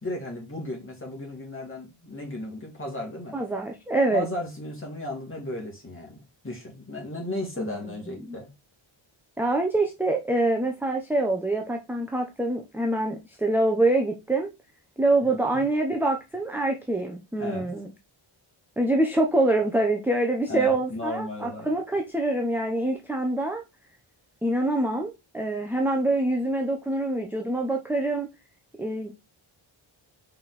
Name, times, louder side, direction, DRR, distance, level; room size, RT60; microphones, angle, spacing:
voice 1, 0.0-3.4 4.1-8.5 15.2-15.3 17.4-17.7 20.5-21.7, left 1 dB, 25° left, 2.5 m, -35 dB
voice 2, 3.3-4.3 7.6-7.8 8.1-8.4 9.4-14.5 15.0-17.9 18.8-23.6 24.4-28.3 28.8-29.1, right 2 dB, 5° right, 0.8 m, -25 dB
5.4 x 4.4 x 4.1 m
wide cardioid pair, 145°, 49 cm